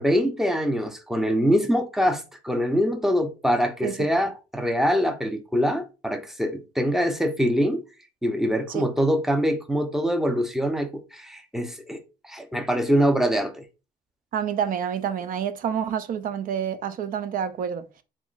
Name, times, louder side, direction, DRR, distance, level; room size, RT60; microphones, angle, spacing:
voice 1, 0.0-7.8 8.2-13.6, equal, ahead, 0.6 m, -24 dB
voice 2, 14.3-17.9, right 8 dB, 55° right, 0.5 m, -28 dB
3.6 x 3.1 x 2.4 m
cardioid pair, 110°, 17 cm